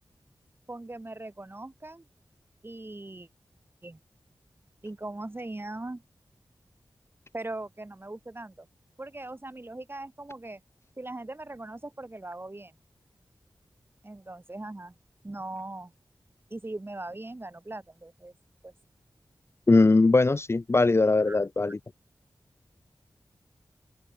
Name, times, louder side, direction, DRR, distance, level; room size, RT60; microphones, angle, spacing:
voice 1, 0.7-2.0 2.6-3.3 3.8-4.0 4.8-6.0 7.3-8.7 9.0-10.6 11.0-12.7 14.0-14.9 15.2-15.9 16.5-18.3 18.6-18.7 21.3-21.4, right 2 dB, 30° right, 4.1 m, -40 dB
voice 2, 19.7-21.8, left 3 dB, 35° left, 0.6 m, -21 dB
open air
wide cardioid pair, 65°, 8 cm